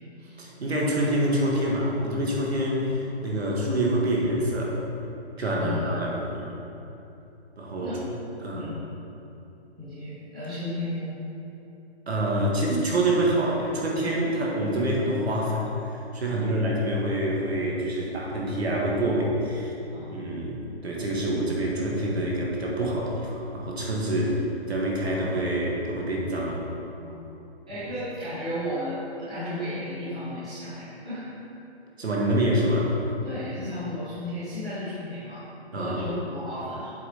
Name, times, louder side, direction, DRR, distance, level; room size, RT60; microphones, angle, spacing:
voice 1, 0.4-4.8 5.4-6.5 7.6-8.7 12.1-19.7 20.1-24.3 24.7-26.6 32.0-32.9 35.7-36.0, right 1 dB, 70° right, -3 dB, 2.0 m, -26 dB
voice 2, 5.6-5.9 7.8-8.0 8.5-8.8 9.7-11.1 16.2-16.5 19.9-20.2 21.2-21.3 24.1-24.2 27.0-27.2 27.7-31.3 33.2-36.9, left 1 dB, 5° right, -17 dB, 0.7 m, -34 dB
7.7 x 6.7 x 4.2 m, 2.9 s
hypercardioid pair, 180°, 33 cm